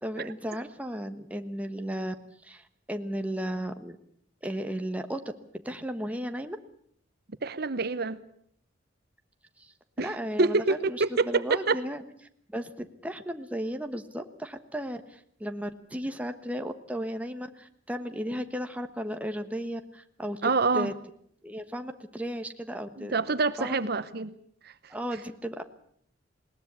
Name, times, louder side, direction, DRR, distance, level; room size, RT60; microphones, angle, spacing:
voice 1, 0.0-2.1 2.4-4.0 4.4-5.2 5.6-6.6 9.6-12.0 12.5-20.9 21.4-23.2 23.6-23.8 24.9-25.6, equal, 5° right, 7 dB, 1.3 m, -35 dB
voice 2, 7.4-8.2 10.0-10.1 10.4-11.8 20.4-20.9 23.0-24.3 24.6-24.9, right 3 dB, 55° right, 14 dB, 0.9 m, -26 dB
20.5 x 19.0 x 8.3 m, 0.65 s
head